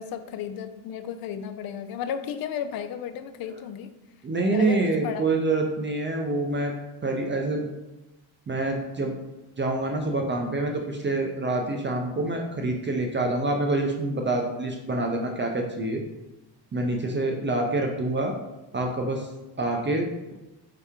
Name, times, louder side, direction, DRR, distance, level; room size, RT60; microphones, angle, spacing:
voice 1, 0.0-3.9 4.5-5.2, left 8 dB, 50° left, 10 dB, 0.5 m, -33 dB
voice 2, 4.2-6.7 7.0-7.6 8.5-9.1 9.6-16.0 16.7-18.3 18.7-19.3 19.6-20.3, right 2 dB, 25° right, 2 dB, 0.5 m, -26 dB
4.6 x 2.8 x 3.6 m, 1.0 s
cardioid pair, 90°, 47 cm